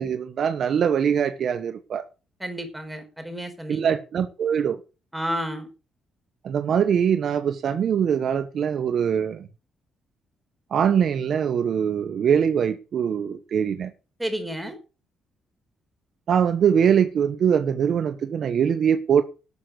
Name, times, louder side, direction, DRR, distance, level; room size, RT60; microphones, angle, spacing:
voice 1, 0.0-2.0 3.7-4.8 6.4-9.4 10.7-13.9 16.3-19.2, right 8 dB, 60° right, 1.3 m, -22 dB
voice 2, 2.4-3.9 5.1-5.7 14.2-14.8, equal, 10° right, 4.7 m, -31 dB
12.5 x 7.6 x 6.5 m
cardioid pair, 90°, 0 cm